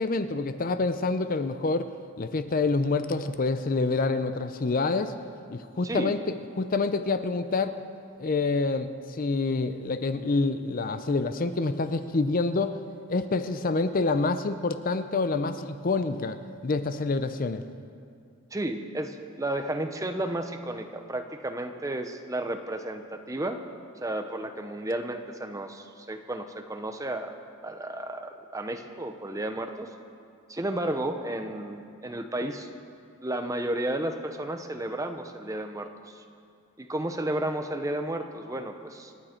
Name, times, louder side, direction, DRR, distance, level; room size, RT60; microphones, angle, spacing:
voice 1, 0.0-1.9 2.2-5.1 5.5-6.2 6.6-7.7 8.2-12.8 13.1-16.4 16.6-17.6, left 3 dB, 40° left, 10 dB, 0.5 m, -27 dB
voice 2, 18.5-23.6 24.0-27.4 27.6-29.9 30.5-32.7 33.2-36.2 36.8-39.1, right 1 dB, 15° right, 6 dB, 0.7 m, -32 dB
27.5 x 9.2 x 4.4 m, 2.4 s
head